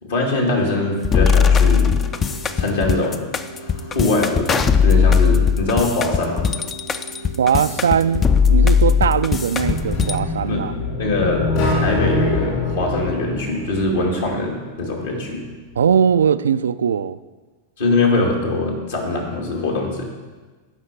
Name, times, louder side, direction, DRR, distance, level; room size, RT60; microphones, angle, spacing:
voice 1, 0.0-2.0 2.6-3.2 3.5-6.4 10.5-10.6 11.0-15.4 17.8-20.0, left 2 dB, 65° left, 0 dB, 2.5 m, -22 dB
sound 1, 1.0-10.2, left 6 dB, 25° left, 0.5 m, -18 dB
sound 2, 1.2-11.2, right 2 dB, 85° left, 1.2 m, -39 dB
voice 2, 7.4-8.2 8.5-10.7 15.8-17.2, right 7 dB, 65° right, 14 dB, 0.3 m, -19 dB
sound 3, 9.6-14.5, left 2 dB, 45° left, 3.5 m, -24 dB
15.5 x 5.7 x 4.6 m, 1.3 s
figure-of-eight pair, 90°, 0 cm